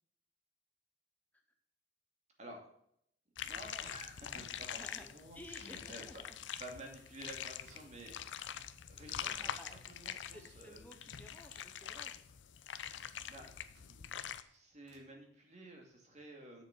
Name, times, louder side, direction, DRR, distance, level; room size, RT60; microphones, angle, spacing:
sound 1, 3.4-14.4, left 9 dB, 75° left, 0.6 m, -45 dB
voice 1, 3.4-6.1 6.6-8.2 8.9-9.5 9.9-10.8 13.3-13.6 13.9-14.0 14.4-16.6, right 1 dB, 40° right, 1 dB, 2.5 m, -52 dB
voice 2, 4.8-5.1 5.3-6.4 9.4-9.8 10.1-12.1, left 1 dB, 10° left, 4 dB, 0.7 m, -55 dB
sound 2, 6.3-8.2 8.6-9.5 10.3-10.4 10.8-13.0 13.4-15.1, right 3 dB, 60° right, 2.3 m, -70 dB
7.6 x 6.8 x 6.0 m, 0.70 s
head